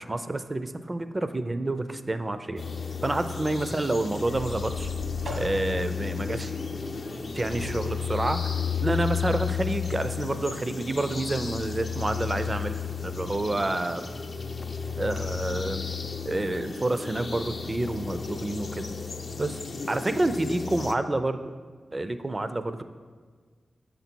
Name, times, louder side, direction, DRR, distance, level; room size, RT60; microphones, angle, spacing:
voice 1, 0.0-2.7 3.0-4.9 5.4-6.5 7.3-8.5 8.8-14.1 15.0-15.8 16.3-18.9 19.4-19.5 19.9-21.4 21.9-22.8, right 2 dB, 35° right, 10 dB, 0.4 m, -28 dB
sound 1, 2.6-20.9, left 6 dB, 60° left, 0.4 m, -33 dB
sound 2, 4.1-15.3, equal, 75° right, 1.2 m, -44 dB
6.7 x 4.0 x 4.4 m, 1.6 s
cardioid pair, 40°, 0 cm